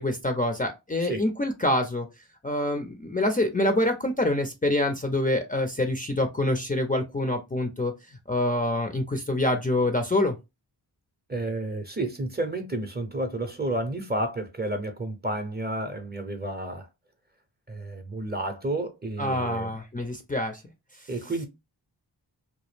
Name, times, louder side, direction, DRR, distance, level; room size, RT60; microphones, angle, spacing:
voice 1, 0.0-2.1 2.4-7.9 8.3-10.3 19.2-20.6, left 1 dB, 20° left, 0.5 m, -26 dB
voice 2, 11.3-16.9 17.7-19.8 21.1-21.5, right 1 dB, 20° right, 0.7 m, -31 dB
2.2 x 2.0 x 3.2 m
cardioid pair, 45°, 45 cm